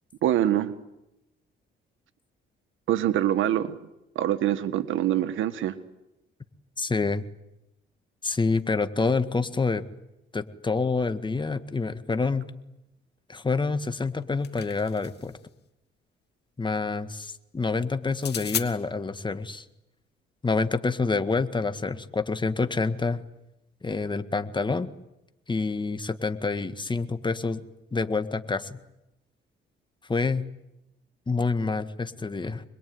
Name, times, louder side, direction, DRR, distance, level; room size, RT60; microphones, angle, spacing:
voice 1, 0.2-0.7 2.9-3.8 4.2-5.8, right 12 dB, 80° right, 1.7 m, -24 dB
voice 2, 6.8-7.2 8.2-9.8 10.3-12.4 13.3-15.4 16.6-19.6 20.4-23.2 23.8-24.9 25.5-27.6 27.9-28.8 30.1-30.4 31.3-32.6, left 4 dB, 25° left, 1.8 m, -27 dB
sound 1, 14.1-15.4 18.1-18.7, left 9 dB, 55° left, 2.0 m, -34 dB
26.5 x 21.5 x 9.6 m
cardioid pair, 90°, 20 cm